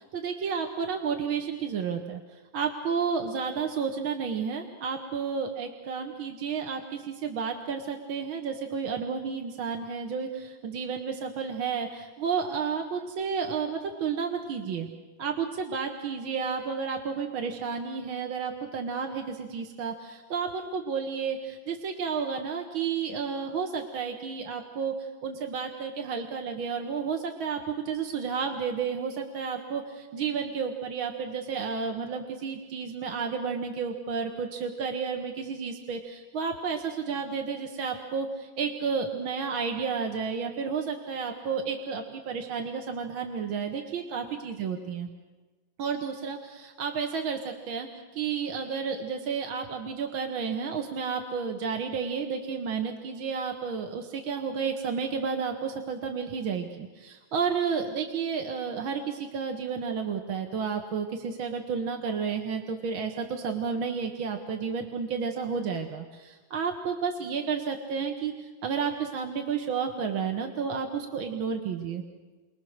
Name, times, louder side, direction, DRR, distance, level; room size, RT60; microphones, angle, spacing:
voice 1, 0.0-2.2 2.5-14.9 15.2-45.1 45.8-72.0, right 6 dB, 80° right, 3 dB, 2.3 m, -31 dB
29.5 x 24.0 x 6.6 m, 1.3 s
omnidirectional pair, 2.2 m